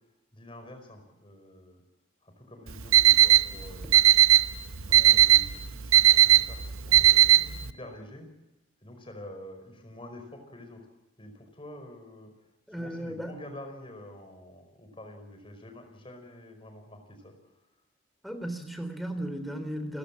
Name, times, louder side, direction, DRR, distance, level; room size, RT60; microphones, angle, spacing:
voice 1, 0.3-1.8 2.2-4.4 4.7-8.3 8.8-10.8 11.2-12.3 12.7-17.6, left 1 dB, 25° left, 5 dB, 4.9 m, -47 dB
Alarm, 2.7-7.7, right 13 dB, 85° right, 0.9 m, -19 dB
voice 2, 12.7-13.4 18.2-20.0, equal, ahead, 6 dB, 3.3 m, -35 dB
29.5 x 16.0 x 7.6 m, 0.96 s
head